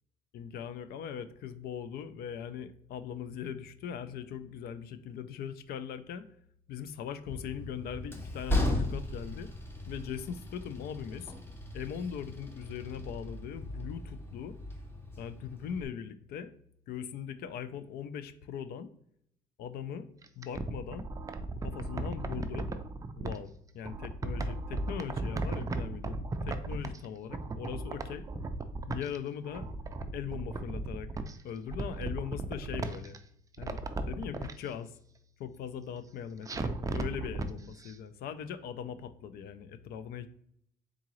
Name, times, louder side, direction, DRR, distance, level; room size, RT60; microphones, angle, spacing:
voice 1, 0.3-6.2 6.7-9.5 9.9-11.3 11.7-14.6 15.2-16.5 16.9-18.9 19.6-20.1 20.4-21.1 21.6-22.7 23.1-26.1 26.4-28.2 28.9-29.7 30.1-31.1 31.4-33.2 33.6-33.8 34.1-35.0 35.4-40.3, left 8 dB, 65° left, 12 dB, 0.4 m, -40 dB
Train, 7.3-15.9, left 1 dB, 15° left, 0.7 m, -37 dB
sound 1, 20.2-23.4 23.8-27.1 27.3-29.2 29.5-31.3 31.7-33.2 33.5-34.5 36.5-37.5 37.8-37.9, right 2 dB, 20° right, 0.4 m, -36 dB
3.8 x 3.6 x 3.0 m, 0.70 s
cardioid pair, 110°, 17 cm